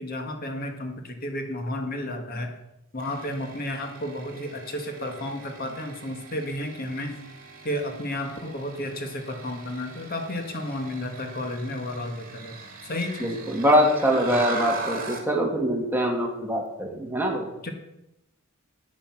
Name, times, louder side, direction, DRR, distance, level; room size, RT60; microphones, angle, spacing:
voice 1, 0.0-2.5 2.9-7.1 7.6-12.5 12.8-13.5 14.3-14.4 17.6-17.7, left 1 dB, 45° left, 4 dB, 1.8 m, -32 dB
sound 1, 3.0-15.3, right 3 dB, 45° right, 2.8 m, -40 dB
voice 2, 13.2-17.5, equal, 10° right, 1 dB, 2.1 m, -23 dB
14.0 x 9.8 x 6.0 m, 0.90 s
head